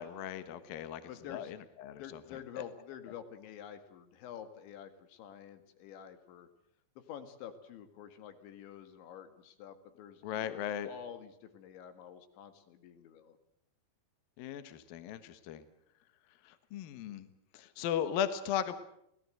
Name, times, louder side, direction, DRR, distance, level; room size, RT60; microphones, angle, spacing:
voice 1, 0.0-1.0 1.3-2.0 10.2-10.9 14.4-15.6 16.5-17.3 17.5-18.8, left 9 dB, 65° left, 11 dB, 2.7 m, -37 dB
voice 2, 1.1-1.5 2.0-6.5 7.1-13.4, left 9 dB, 80° left, 9 dB, 4.2 m, -48 dB
27.5 x 18.0 x 7.8 m, 0.76 s
omnidirectional pair, 5.2 m